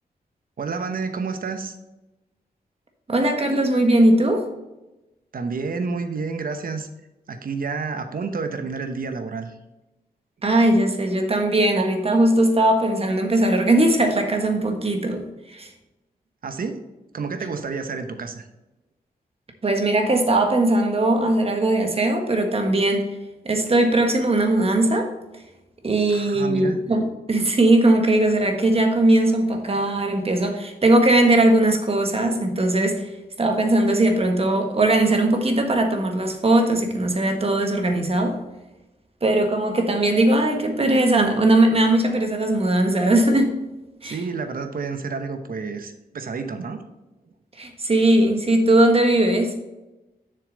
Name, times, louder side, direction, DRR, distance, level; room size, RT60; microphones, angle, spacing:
voice 1, 0.6-1.7 5.3-6.9 7.3-9.5 16.4-16.8 17.1-18.4 26.1-26.8 44.0-46.8, right 4 dB, 60° right, 8 dB, 0.9 m, -29 dB
voice 2, 3.1-4.5 10.4-15.7 19.6-23.1 23.4-25.1 25.8-33.1 33.4-38.4 39.2-43.6 44.0-44.2 47.6-49.5, right 1 dB, 35° right, 4 dB, 1.4 m, -19 dB
7.0 x 6.6 x 3.9 m, 1.0 s
wide cardioid pair, 100°, 16 cm